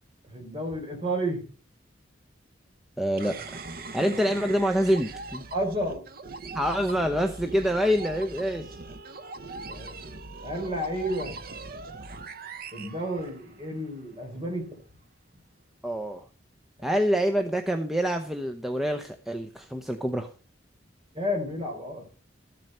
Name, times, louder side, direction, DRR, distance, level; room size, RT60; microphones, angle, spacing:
voice 1, 0.2-1.4 5.5-6.0 9.7-10.0 10.4-11.3 12.7-14.7 16.8-17.0 21.1-22.1, equal, 30° right, 1 dB, 3.7 m, -31 dB
voice 2, 3.0-3.4 3.9-5.4 6.5-8.8 15.8-16.3 16.8-20.3, equal, ahead, 4 dB, 0.7 m, -26 dB
sound 1, 3.2-13.8, right 3 dB, 50° right, 0.8 m, -40 dB
13.5 x 7.7 x 5.4 m, 0.38 s
head